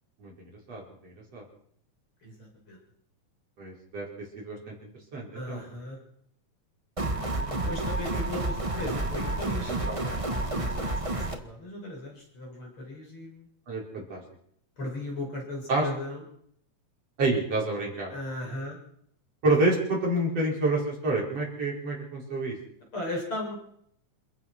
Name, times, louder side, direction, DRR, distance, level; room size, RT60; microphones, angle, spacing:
voice 1, 0.2-1.4 3.6-5.6 7.6-7.7 8.8-8.9 9.7-10.0 13.7-14.2 15.7-15.9 17.2-18.1 19.4-22.6, right 2 dB, 55° right, -2 dB, 6.3 m, -29 dB
voice 2, 2.2-2.8 5.3-6.0 7.2-13.5 14.8-16.2 18.1-18.8 22.9-23.6, left 1 dB, 40° left, -1 dB, 7.9 m, -37 dB
sound 1, 7.0-11.4, right 2 dB, 15° right, 1.0 m, -30 dB
27.5 x 15.5 x 6.2 m, 0.70 s
omnidirectional pair, 3.4 m